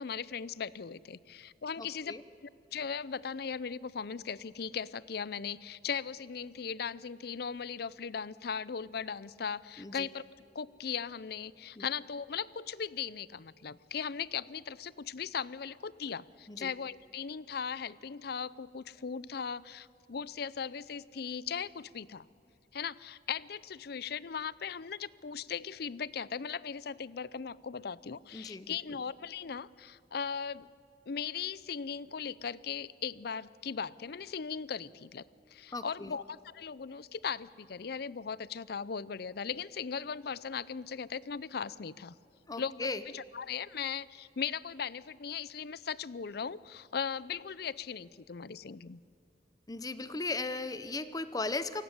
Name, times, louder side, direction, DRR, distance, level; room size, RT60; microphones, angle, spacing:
voice 1, 0.0-2.1 2.4-10.2 10.5-22.3 22.7-30.7 31.1-35.2 35.5-42.1 42.6-42.9 43.1-49.0, left 6 dB, 60° left, 20 dB, 0.6 m, -38 dB
voice 2, 1.8-2.2 9.8-10.1 11.8-11.9 16.5-16.7 28.3-28.8 35.7-36.2 42.5-43.0 49.7-51.8, left 3 dB, 20° left, 13 dB, 0.7 m, -37 dB
28.0 x 17.5 x 9.6 m, 2.3 s
head